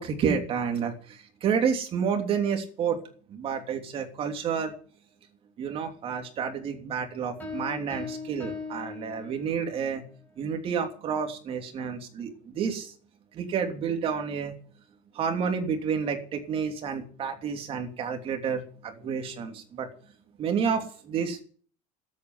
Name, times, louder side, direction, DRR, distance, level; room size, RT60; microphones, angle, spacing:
voice 1, 0.0-3.0 3.3-4.7 5.6-10.0 10.4-12.9 13.3-14.5 15.1-19.9 20.4-21.4, right 6 dB, 35° right, 4 dB, 3.1 m, -30 dB
sound 1, 7.4-9.8, left 4 dB, 10° left, 4.8 m, -39 dB
13.0 x 8.8 x 9.7 m, 0.44 s
cardioid pair, 155°, 16 cm